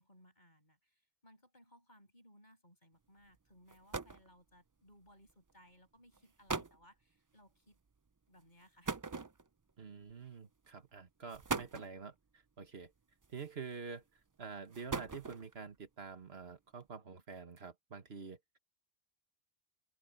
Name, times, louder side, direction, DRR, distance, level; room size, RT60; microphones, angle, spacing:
voice 1, 0.0-7.8 8.3-9.0, equal, 45° left, 8.1 m, -64 dB
sound 1, 3.3-3.4 3.7-4.3 5.3-5.5 6.1-6.2 6.5-6.8 8.8-9.7 10.6-10.8 11.3-12.0 13.2-13.7 14.5-15.6, right 4 dB, 30° right, 0.4 m, -40 dB
voice 2, 9.8-12.9 13.3-14.0 14.4-18.6, right 5 dB, 80° right, 1.8 m, -47 dB
open air
omnidirectional pair, 1.0 m